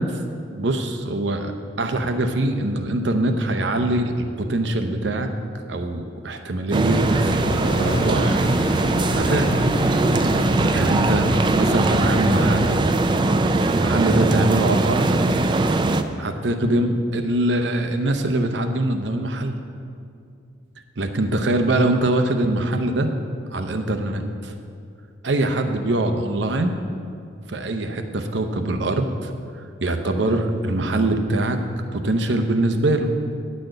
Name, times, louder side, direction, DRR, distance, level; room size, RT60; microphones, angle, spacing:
voice 1, 0.5-1.5 1.8-5.3 5.7-7.4 7.7-8.5 9.1-9.6 10.7-11.3 11.5-12.7 13.7-15.4 16.2-19.5 21.0-23.1 23.5-24.5 25.2-26.8 27.5-29.3 29.8-31.6 31.9-33.1, right 1 dB, 80° right, 6 dB, 0.7 m, -23 dB
sound 1, 6.7-16.0, right 2 dB, 25° right, 0.3 m, -20 dB
sound 2, 6.9-12.8, left 2 dB, 55° left, 0.5 m, -29 dB
10.0 x 4.3 x 7.7 m, 2.4 s
head